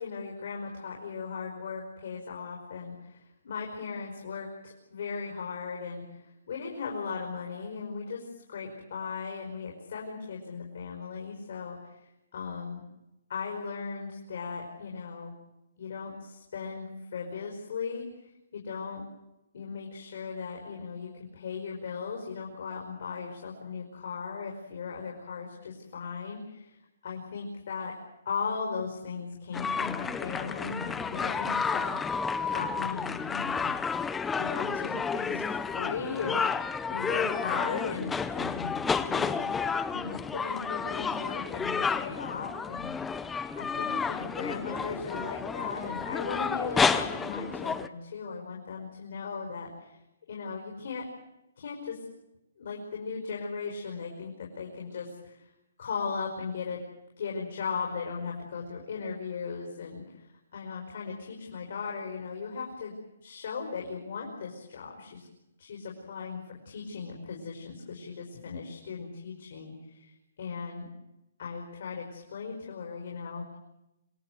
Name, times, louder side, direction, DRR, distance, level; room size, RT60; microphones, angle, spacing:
voice 1, 0.0-12.8 13.3-15.3 15.8-19.0 19.5-26.8 27.0-28.0 28.3-33.7 34.4-35.4 35.7-38.7 39.0-39.4 39.9-42.9 43.6-50.0 50.3-51.1 51.6-52.1 52.6-55.5 55.8-56.8 57.2-62.9 63.2-65.3 65.6-70.9 71.4-73.6, left 5 dB, 60° left, 0 dB, 5.4 m, -37 dB
sound 1, 29.5-47.9, left 5 dB, 10° left, 0.8 m, -31 dB
26.5 x 18.5 x 8.1 m, 0.92 s
hypercardioid pair, 155°, 0 cm